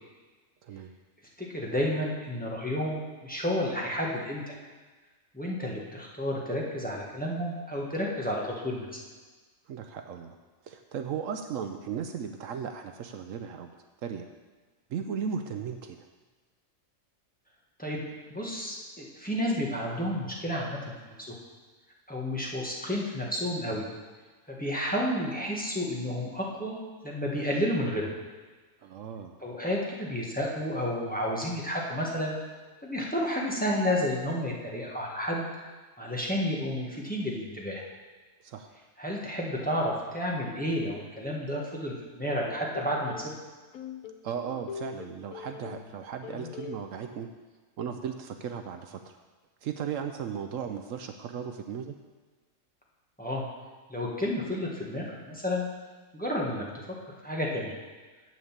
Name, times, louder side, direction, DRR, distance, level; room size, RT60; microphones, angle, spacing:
voice 1, 0.6-0.9 9.7-10.4 10.6-13.7 14.0-14.2 14.9-16.1 28.8-29.4 38.4-38.7 44.2-47.3 47.8-49.2 49.6-51.9, right 7 dB, 75° right, 6 dB, 1.0 m, -36 dB
voice 2, 1.4-4.5 5.3-8.9 17.8-18.0 18.3-21.4 22.1-23.8 24.5-26.8 27.0-28.1 29.4-32.4 32.8-35.5 36.0-37.8 39.0-43.3 53.2-53.4 53.9-55.7 56.1-57.0 57.2-57.7, equal, 5° left, -3 dB, 1.5 m, -31 dB
sound 1, 42.5-43.3 43.7-45.9 46.2-46.8, left 7 dB, 85° left, 1.2 m, -41 dB
8.1 x 6.2 x 7.3 m, 1.3 s
omnidirectional pair, 1.4 m